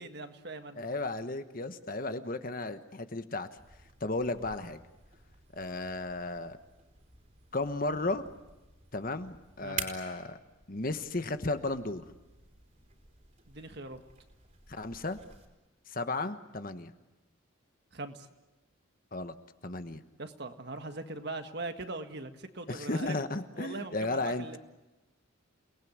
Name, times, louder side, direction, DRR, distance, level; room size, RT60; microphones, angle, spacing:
voice 1, 0.0-0.8 9.6-9.8 13.5-14.0 17.9-18.3 20.2-23.2 23.6-24.6, right 2 dB, 50° right, 7 dB, 1.7 m, -41 dB
voice 2, 0.8-3.5 4.0-4.8 5.6-6.6 7.5-8.2 8.9-10.4 10.7-12.0 14.7-15.2 15.9-16.9 19.1-19.3 19.6-20.0 22.7-24.5, left 2 dB, 40° left, 9 dB, 1.2 m, -34 dB
sound 1, 3.6-15.5, right 5 dB, 35° right, 3.7 m, -48 dB
29.0 x 19.5 x 9.5 m, 1.1 s
head